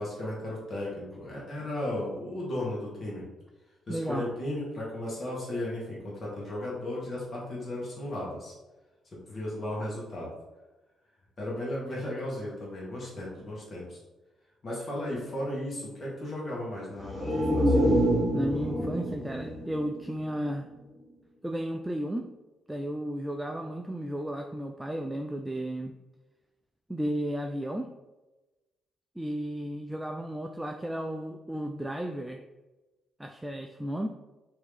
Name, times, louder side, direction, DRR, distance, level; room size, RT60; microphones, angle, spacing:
voice 1, 0.0-3.3 3.9-8.5 9.1-10.3 11.4-14.0 14.6-17.8, left 1 dB, 45° left, -5 dB, 1.2 m, -35 dB
voice 2, 3.9-4.3 18.3-20.7 21.4-22.3 22.7-26.0 26.9-27.9 29.2-32.4 33.2-34.1, right 1 dB, 10° right, 4 dB, 0.3 m, -33 dB
sound 1, 17.0-20.7 21.1-21.2, equal, 30° left, 1.4 m, -27 dB
2.9 x 2.7 x 3.5 m, 1.1 s
hypercardioid pair, 45°, 0 cm